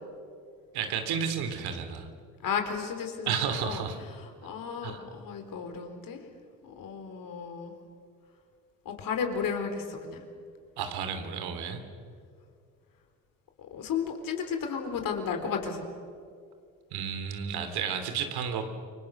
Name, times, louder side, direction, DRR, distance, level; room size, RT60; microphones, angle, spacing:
voice 1, 0.7-2.1 3.3-4.0 4.8-5.0 10.8-11.8 16.9-18.7, right 7 dB, 65° right, 7 dB, 3.1 m, -32 dB
voice 2, 2.4-3.8 4.1-6.2 6.6-7.8 8.8-10.3 13.6-15.9, left 6 dB, 50° left, 5 dB, 4.1 m, -34 dB
29.0 x 24.0 x 6.6 m, 2.2 s
hypercardioid pair, 70°, 41 cm